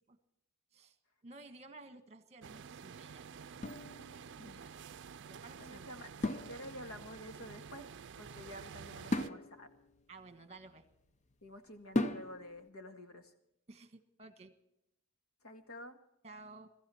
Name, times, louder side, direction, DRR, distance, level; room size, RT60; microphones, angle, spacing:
voice 1, 1.2-3.4 4.4-4.8 5.3-5.9 10.1-10.9 13.7-14.5 16.2-16.7, right 3 dB, 30° right, 9 dB, 1.4 m, -54 dB
sound 1, 2.4-9.3, right 6 dB, 60° right, 0.5 m, -50 dB
sound 2, 3.6-4.6 6.2-7.1 9.1-11.1 12.0-12.7, left 1 dB, 35° left, 0.7 m, -38 dB
voice 2, 5.6-7.9 8.2-9.7 11.4-13.3 15.4-16.0, equal, 80° left, 6 dB, 1.9 m, -49 dB
22.0 x 14.0 x 4.3 m, 0.81 s
head